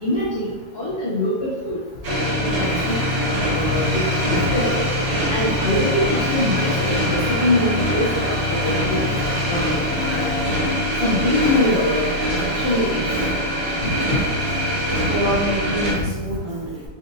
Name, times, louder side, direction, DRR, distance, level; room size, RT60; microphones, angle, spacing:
voice 1, 0.0-1.8 2.6-2.9 3.5-4.0 4.3-4.8 5.3-8.3 8.9-10.3 11.0-12.0 12.5-13.0, left 1 dB, 55° left, -6 dB, 0.7 m, -23 dB
sound 1, 2.0-15.9, equal, 60° right, 2.1 m, -23 dB
voice 2, 14.8-16.8, right 1 dB, 45° right, -8 dB, 1.5 m, -27 dB
4.1 x 3.8 x 2.6 m, 1.2 s
omnidirectional pair, 2.1 m